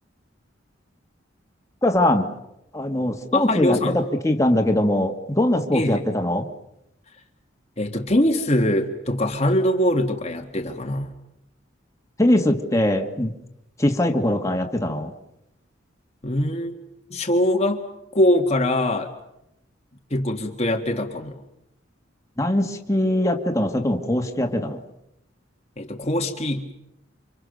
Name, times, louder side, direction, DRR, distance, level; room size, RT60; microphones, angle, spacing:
voice 1, 1.8-2.3 2.7-6.5 12.2-13.3 13.8-15.1 22.4-24.8, left 1 dB, 15° left, 3 dB, 2.0 m, -21 dB
voice 2, 3.3-4.0 5.7-6.1 7.8-11.1 16.2-16.8 17.1-17.8 18.1-19.1 20.1-21.4 25.8-26.7, left 1 dB, 35° left, 3 dB, 1.7 m, -22 dB
28.5 x 27.0 x 6.7 m, 0.85 s
head